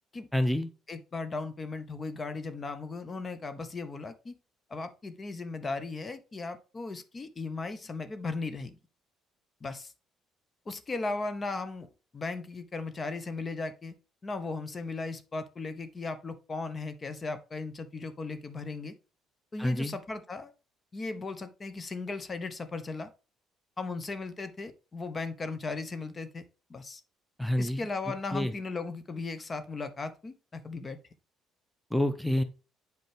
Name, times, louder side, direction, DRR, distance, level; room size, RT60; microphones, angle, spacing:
voice 1, 0.3-0.7 19.6-19.9 27.4-27.8 28.3-28.5 31.9-32.4, left 1 dB, ahead, 11 dB, 0.8 m, -27 dB
voice 2, 0.9-4.4 4.7-8.8 9.6-9.9 10.7-11.9 12.1-13.9 14.2-19.0 19.5-20.5 20.9-23.1 23.8-26.4 26.7-27.0 27.6-31.0, left 3 dB, 35° left, 11 dB, 0.8 m, -37 dB
7.7 x 4.6 x 3.3 m, 0.33 s
hypercardioid pair, 55°, 0 cm